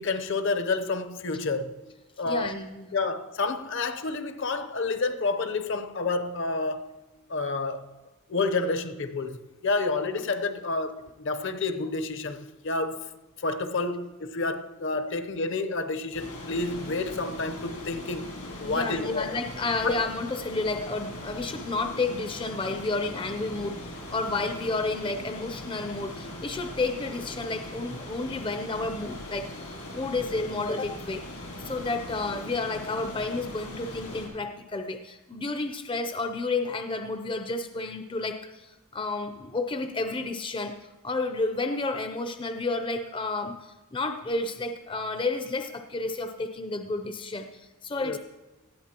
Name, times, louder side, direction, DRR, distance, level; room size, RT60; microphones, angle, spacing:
voice 1, 0.0-1.8 2.2-2.5 2.9-6.9 7.3-7.9 8.3-9.4 9.6-13.1 13.4-19.4 19.8-20.0 48.0-48.2, left 3 dB, 55° left, 0.8 m, -29 dB
voice 2, 2.3-2.9 18.6-23.8 24.1-29.5 29.9-31.2 31.6-40.8 41.0-48.2, left 3 dB, 20° left, 0.5 m, -31 dB
sound 1, 16.1-34.3, left 1 dB, 80° left, 5.0 m, -40 dB
18.5 x 13.5 x 2.9 m
head